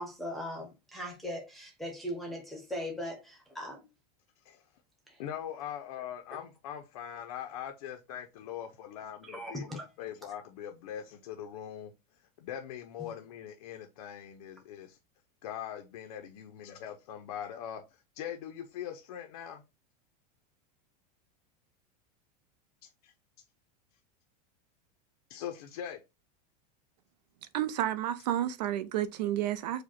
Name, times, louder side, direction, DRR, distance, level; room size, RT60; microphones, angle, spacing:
voice 1, 0.0-3.9 9.3-9.8 13.0-13.1, equal, ahead, 0.7 m, -39 dB
voice 2, 5.2-11.9 12.4-15.0 15.4-17.8 18.2-19.6 23.0-23.1 25.3-26.0, left 9 dB, 65° left, 0.6 m, -41 dB
voice 3, 27.5-29.8, right 12 dB, 80° right, 0.7 m, -31 dB
4.9 x 2.2 x 4.2 m
supercardioid pair, 180°, 21 cm